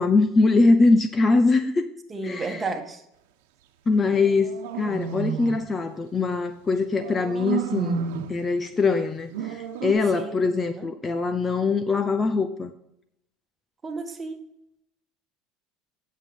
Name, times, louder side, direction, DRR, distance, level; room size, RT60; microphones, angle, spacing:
voice 1, 0.0-1.8 2.2-2.6 3.9-8.0 8.3-12.7, left 3 dB, 20° left, 0.6 m, -22 dB
voice 2, 2.1-3.0 10.1-10.4 10.7-10.9 13.8-14.4, right 3 dB, 20° right, 1.7 m, -32 dB
sound 1, 4.1-5.6 6.9-8.4 9.3-9.9, right 7 dB, 85° right, 1.1 m, -31 dB
9.7 x 7.3 x 5.3 m
supercardioid pair, 120°, 0 cm